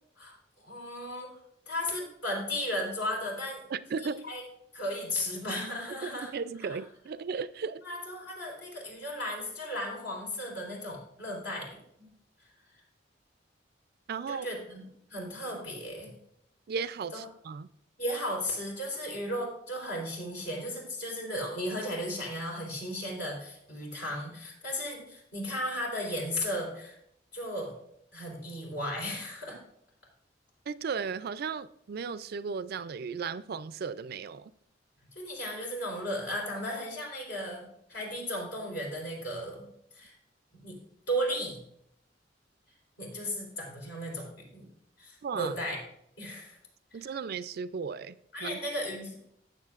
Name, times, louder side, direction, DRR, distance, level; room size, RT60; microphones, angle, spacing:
voice 1, 0.6-1.3 1.7-3.6 4.0-4.4 4.7-6.3 7.8-11.7 14.3-14.8 15.1-16.1 17.1-17.2 18.0-26.9 27.3-27.7 28.1-29.6 35.2-39.7 39.9-40.1 40.5-40.8 41.1-41.6 43.0-44.7 45.0-45.8 46.2-46.6 46.9-47.1 48.3-49.1, equal, 65° left, 3.7 m, -35 dB
voice 2, 3.7-4.3 6.0-7.8 14.1-14.5 16.7-17.7 30.7-34.5 45.2-45.5 46.9-48.6, right 5 dB, 55° right, 0.4 m, -35 dB
17.0 x 7.1 x 2.4 m
head